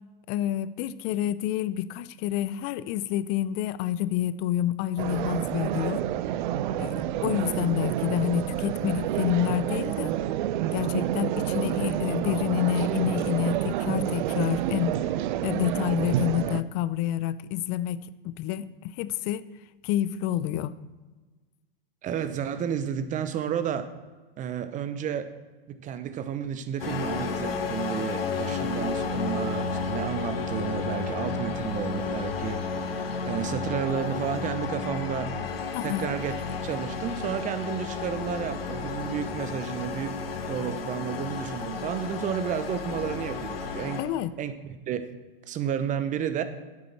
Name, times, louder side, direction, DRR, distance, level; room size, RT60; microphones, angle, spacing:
voice 1, 0.3-6.0 6.8-10.1 10.7-15.0 15.4-18.0 18.2-19.4 19.8-20.7 35.7-36.1 44.0-44.3, left 12 dB, 35° left, 16 dB, 0.5 m, -28 dB
sound 1, 5.0-16.6, right 12 dB, 55° right, 0.6 m, -29 dB
voice 2, 22.0-23.9 24.4-25.3 25.7-32.6 33.3-35.3 35.8-36.3 36.6-40.2 40.5-44.0 44.4-45.1 45.5-46.4, right 8 dB, 25° right, 11 dB, 0.9 m, -31 dB
sound 2, 26.8-44.0, left 4 dB, 85° left, 1.3 m, -32 dB
10.5 x 8.6 x 4.5 m, 1.3 s
hypercardioid pair, 115°, 29 cm